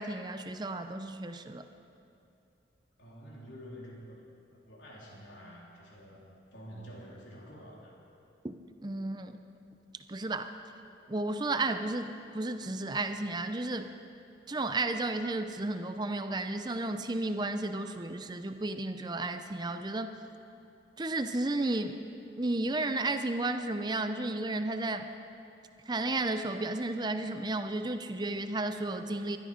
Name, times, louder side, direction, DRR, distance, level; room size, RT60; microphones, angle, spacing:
voice 1, 0.0-1.6 8.4-9.4 10.1-10.5 11.1-13.9 14.5-20.2 21.0-22.0 22.4-25.1 25.9-29.4, right 2 dB, 20° right, 8 dB, 0.5 m, -33 dB
voice 2, 3.0-6.2 6.5-7.9, equal, 80° left, -4 dB, 3.8 m, -48 dB
20.5 x 12.5 x 5.1 m, 2.6 s
head